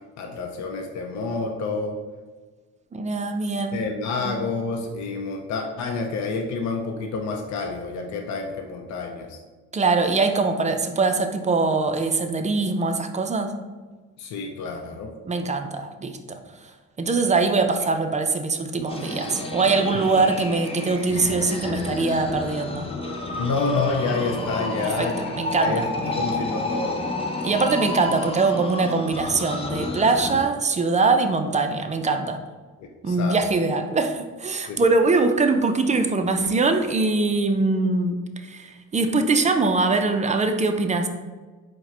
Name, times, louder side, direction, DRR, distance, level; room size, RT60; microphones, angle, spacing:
voice 1, 0.2-2.0 3.7-9.4 14.2-15.1 19.9-20.0 23.4-27.0 33.1-33.4 34.7-34.9, left 4 dB, 65° left, 3 dB, 0.6 m, -28 dB
voice 2, 2.9-3.8 4.2-4.4 9.7-13.5 15.2-16.4 17.0-22.9 24.8-25.9 27.4-32.4 33.0-41.1, right 3 dB, 25° right, 6 dB, 0.4 m, -22 dB
sound 1, 18.9-30.4, left 2 dB, 20° left, 0.6 m, -30 dB
4.6 x 2.2 x 4.3 m, 1.3 s
cardioid pair, 90°, 30 cm